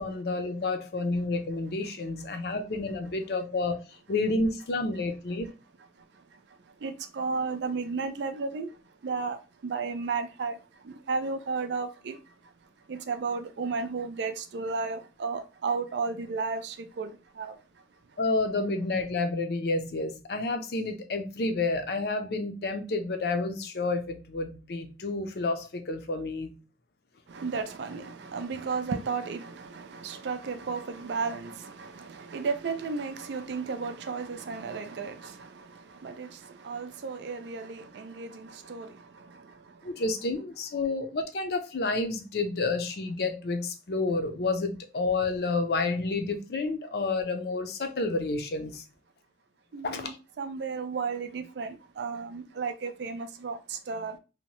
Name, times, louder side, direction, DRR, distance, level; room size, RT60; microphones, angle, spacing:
voice 1, 0.0-3.8 4.1-5.5 18.2-26.5 39.8-48.8 49.8-50.2, left 3 dB, 65° left, 0.5 m, -30 dB
voice 2, 6.8-8.7 9.0-9.4 9.6-10.6 10.9-12.2 12.9-17.1 17.4-17.6 27.3-35.5 36.0-36.4 36.6-38.9 49.7-54.2, right 4 dB, 80° right, 0.4 m, -33 dB
2.7 x 2.1 x 2.9 m
head